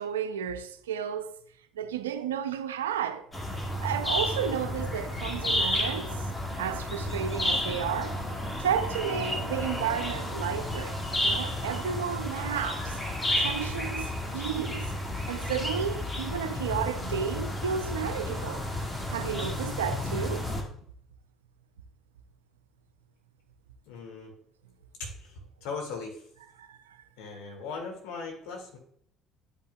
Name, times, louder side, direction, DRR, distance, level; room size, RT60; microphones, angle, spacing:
voice 1, 0.0-1.4 1.8-3.3 3.8-6.2 6.6-8.2 8.6-11.0 11.2-13.0 13.4-14.9 15.3-18.7 19.1-20.5 26.6-26.8, right 8 dB, 90° right, 0.5 m, -32 dB
sound 1, 3.3-20.6, left 1 dB, 20° left, 2.1 m, -32 dB
voice 2, 23.9-24.3 25.0-26.3 27.2-28.8, left 4 dB, 75° left, 2.2 m, -39 dB
11.5 x 5.5 x 2.3 m
hypercardioid pair, 65°, 0 cm